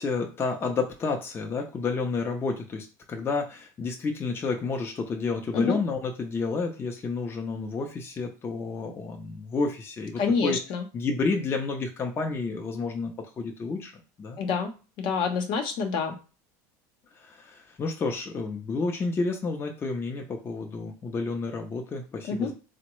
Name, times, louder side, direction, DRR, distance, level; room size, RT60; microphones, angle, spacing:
voice 1, 0.0-10.6 10.9-13.9 14.2-14.4 17.1-22.5, left 4 dB, 25° left, 2 dB, 0.6 m, -30 dB
voice 2, 10.2-10.8 14.4-16.2 22.2-22.5, left 5 dB, 55° left, 5 dB, 0.8 m, -27 dB
3.5 x 2.1 x 3.0 m, 0.33 s
supercardioid pair, 115°, 10 cm